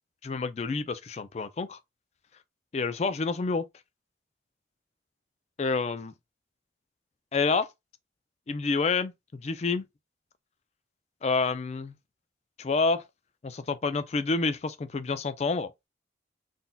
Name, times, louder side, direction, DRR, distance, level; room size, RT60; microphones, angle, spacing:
voice 1, 0.2-1.8 2.7-3.7 5.6-6.1 7.3-7.7 8.5-9.9 11.2-11.9 12.6-13.0 13.4-15.7, left 4 dB, 35° left, 0.3 m, -28 dB
3.8 x 2.6 x 2.2 m
head